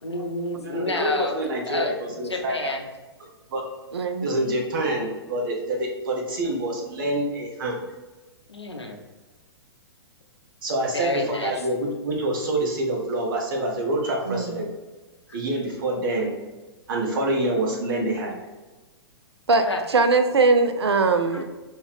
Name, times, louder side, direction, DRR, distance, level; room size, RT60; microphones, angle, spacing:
voice 1, 0.0-1.9 2.2-2.9 8.5-9.0 10.9-11.7 15.3-15.4 19.5-19.8 21.3-21.4, left 2 dB, 90° left, 2 dB, 0.6 m, -29 dB
voice 2, 0.6-2.7 3.5-3.6 4.2-7.9 10.6-14.7 15.3-16.4 16.9-18.4, right 1 dB, 50° right, -1 dB, 1.2 m, -26 dB
voice 3, 3.9-4.3 14.3-14.6 19.5-21.4, right 3 dB, 75° right, 7 dB, 0.5 m, -21 dB
5.2 x 2.4 x 3.3 m, 1.2 s
figure-of-eight pair, 110°, 14 cm